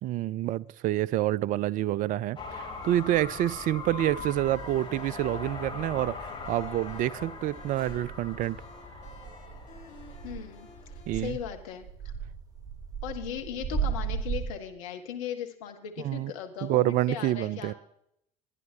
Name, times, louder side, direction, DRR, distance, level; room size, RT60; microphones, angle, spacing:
voice 1, 0.0-8.6 11.1-11.4 16.0-16.3 16.6-17.7, right 14 dB, 45° right, 0.5 m, -28 dB
sound 1, 2.3-11.0, left 4 dB, 25° left, 3.3 m, -41 dB
sound 2, 2.8-11.2, left 3 dB, 45° left, 5.0 m, -55 dB
sound 3, 4.2-4.8 5.2-14.5, right 6 dB, 20° right, 3.2 m, -37 dB
voice 2, 10.2-10.7 11.1-11.9 13.0-17.7, left 9 dB, 70° left, 1.5 m, -38 dB
21.5 x 10.5 x 2.9 m
figure-of-eight pair, 60°, 18 cm